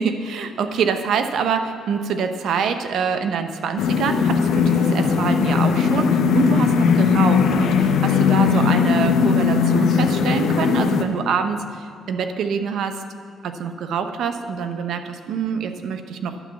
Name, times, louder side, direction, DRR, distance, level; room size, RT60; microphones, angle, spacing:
voice 1, 0.0-13.0 13.4-16.5, right 6 dB, 75° right, 8 dB, 0.8 m, -25 dB
sound 1, 3.8-11.0, left 6 dB, 80° left, 0.8 m, -18 dB
11.0 x 6.2 x 8.3 m, 2.4 s
cardioid pair, 90°, 0 cm